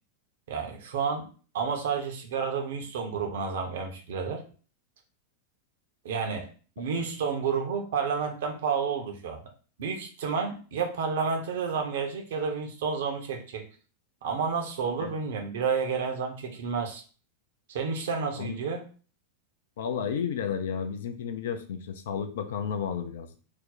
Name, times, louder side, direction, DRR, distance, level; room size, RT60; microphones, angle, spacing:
voice 1, 0.5-1.3 1.5-4.4 6.0-6.5 6.8-9.4 9.8-13.7 14.2-17.0 17.7-18.9, right 5 dB, 55° right, 4 dB, 0.6 m, -30 dB
voice 2, 19.8-23.4, left 7 dB, 60° left, 7 dB, 0.4 m, -32 dB
2.7 x 2.0 x 3.9 m, 0.39 s
figure-of-eight pair, 90°, 0 cm